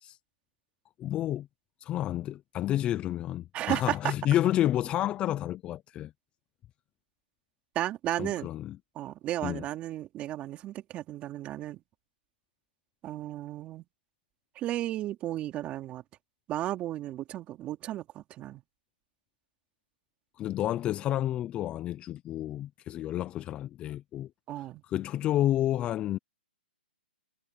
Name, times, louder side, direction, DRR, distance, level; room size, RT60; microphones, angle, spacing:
voice 1, 1.0-1.5 1.8-6.1 8.2-8.8 9.4-9.6 20.4-24.3 24.8-26.2, left 12 dB, 20° left, 0.7 m, -30 dB
voice 2, 3.5-4.1 7.7-8.5 8.9-11.8 13.0-13.8 14.5-16.0 16.5-18.6 24.5-24.8, right 13 dB, 20° right, 2.9 m, -34 dB
hypercardioid pair, 145°, 6 cm